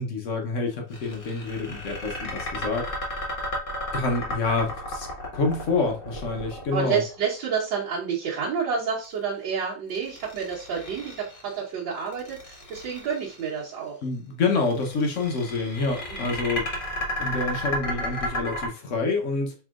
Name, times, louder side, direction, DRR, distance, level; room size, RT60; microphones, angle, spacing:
voice 1, 0.0-2.9 3.9-5.1 5.3-7.0 14.0-16.7 17.2-19.5, left 3 dB, 55° left, 0.9 m, -27 dB
sound 1, 0.9-7.1 9.9-11.5 12.1-13.4 14.7-18.7, left 1 dB, 30° left, 1.3 m, -33 dB
voice 2, 6.7-14.0 16.2-16.3, right 6 dB, 75° right, 1.6 m, -29 dB
4.7 x 3.5 x 2.4 m
omnidirectional pair, 2.0 m